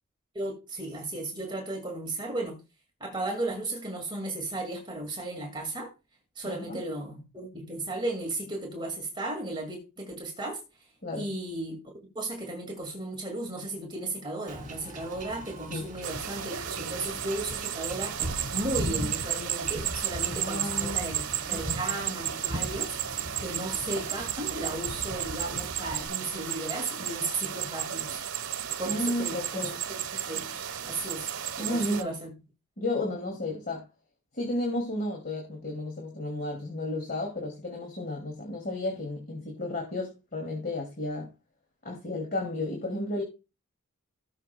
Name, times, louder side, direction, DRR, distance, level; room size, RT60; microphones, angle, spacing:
voice 1, 0.3-2.6 3.0-5.9 6.4-10.6 11.1-11.8 12.1-18.2 18.5-28.2 28.8-31.3 31.6-32.3, right 2 dB, 20° right, 2.0 m, -35 dB
voice 2, 6.4-6.8 11.0-11.3 15.7-15.8 20.3-21.1 21.5-21.8 28.9-29.8 31.6-32.2 32.8-33.9 34.3-41.3 41.8-43.2, left 1 dB, 45° left, 2.4 m, -33 dB
Wind / Ocean / Boat Water vehicle, 14.5-26.1, right 1 dB, 40° right, 3.0 m, -39 dB
sound 1, 16.0-32.0, right 10 dB, 75° right, 1.0 m, -33 dB
18.0 x 6.5 x 2.2 m
head